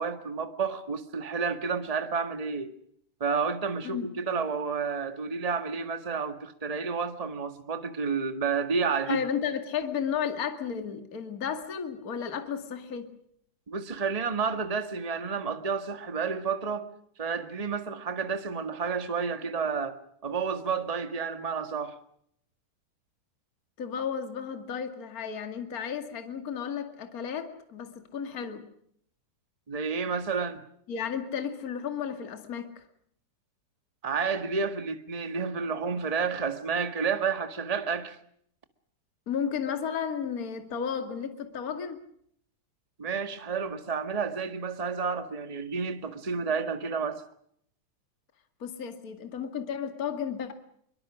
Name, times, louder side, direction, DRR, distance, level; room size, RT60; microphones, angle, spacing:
voice 1, 0.0-2.7 3.2-9.2 13.7-16.9 17.2-21.9 29.7-30.6 34.0-38.2 43.0-47.2, right 5 dB, 20° right, 0.9 m, -30 dB
voice 2, 9.1-13.1 23.8-28.6 30.9-32.8 39.3-42.0 48.6-50.5, left 7 dB, 30° left, 2.2 m, -33 dB
24.0 x 23.5 x 6.3 m
omnidirectional pair, 3.6 m